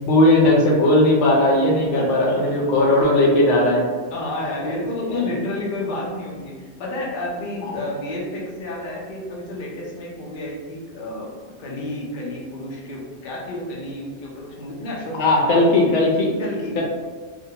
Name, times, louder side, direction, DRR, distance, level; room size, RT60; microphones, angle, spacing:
voice 1, 0.0-3.8 15.2-16.3 16.8-16.9, left 1 dB, 85° left, -2 dB, 0.9 m, -17 dB
voice 2, 1.9-2.6 4.1-11.3 11.6-15.9 16.4-16.8, left 2 dB, 55° left, -3 dB, 0.7 m, -30 dB
2.5 x 2.1 x 2.7 m, 1.4 s
omnidirectional pair, 1.2 m